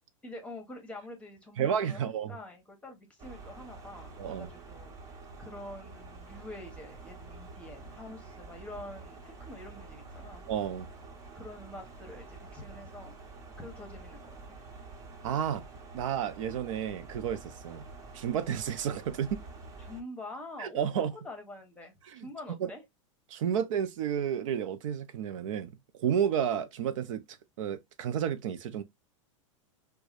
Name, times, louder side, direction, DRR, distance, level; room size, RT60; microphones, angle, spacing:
voice 1, 0.2-10.4 11.3-13.1 13.6-14.5 19.8-22.8, left 1 dB, 5° left, 1.0 m, -46 dB
voice 2, 1.6-2.4 4.2-4.5 10.5-10.9 15.2-15.6 15.9-17.8 18.1-19.4 20.6-21.1 22.0-22.2 22.6-22.7 23.3-25.7 26.0-28.8, right 8 dB, 70° right, 0.5 m, -31 dB
sound 1, 3.2-20.0, right 3 dB, 45° right, 1.3 m, -48 dB
4.7 x 2.2 x 2.4 m
supercardioid pair, 135°, 17 cm